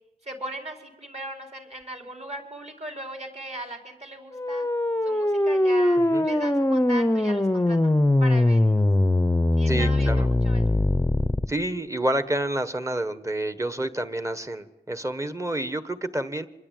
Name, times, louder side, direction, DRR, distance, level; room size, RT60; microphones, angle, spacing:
voice 1, 0.2-4.7 5.0-8.9 9.6-10.1 10.4-10.6, right 1 dB, 40° right, 4 dB, 4.8 m, -38 dB
sound 1, 4.4-11.5, left 1 dB, 15° left, 0.9 m, -21 dB
voice 2, 9.7-10.3 11.5-16.5, right 1 dB, 20° right, 12 dB, 1.5 m, -29 dB
26.0 x 21.0 x 9.4 m, 0.94 s
wide cardioid pair, 100°, 17 cm